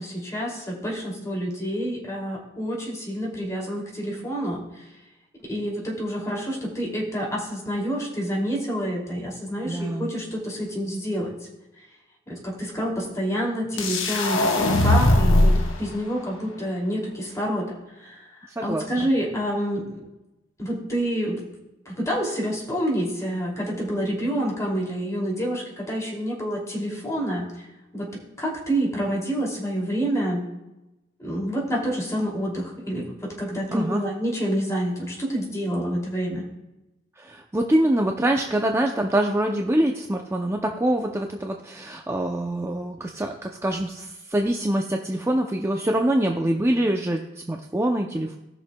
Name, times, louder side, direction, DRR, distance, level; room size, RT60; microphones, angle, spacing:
voice 1, 0.0-4.6 5.5-11.3 12.3-17.7 18.0-18.2 18.6-20.0 20.6-21.4 21.9-27.5 27.9-30.4 31.2-36.5, equal, 15° left, -3 dB, 2.6 m, -28 dB
voice 2, 9.6-10.1 18.6-19.1 33.7-34.0 37.2-48.4, right 1 dB, 15° right, 2 dB, 0.5 m, -25 dB
sound 1, 13.8-15.7, left 1 dB, 80° left, 1.1 m, -19 dB
18.5 x 6.3 x 2.2 m, 0.98 s
head